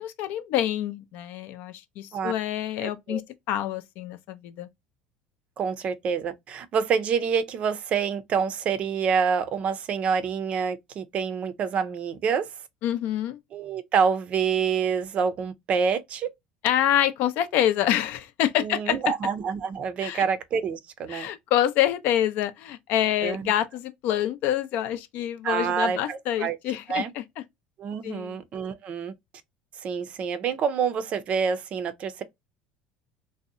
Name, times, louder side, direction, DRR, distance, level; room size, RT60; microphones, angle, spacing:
voice 1, 0.0-3.2 3.5-4.7 12.8-13.4 16.6-19.0 20.0-20.2 21.1-27.2 28.0-28.4, left 11 dB, 65° left, 0.4 m, -26 dB
voice 2, 2.8-3.2 5.6-12.5 13.5-16.3 18.6-21.3 23.2-23.5 25.4-26.6 26.9-27.1 27.8-29.1 29.8-32.2, right 6 dB, 45° right, 0.4 m, -27 dB
2.7 x 2.0 x 2.5 m
supercardioid pair, 110°, 3 cm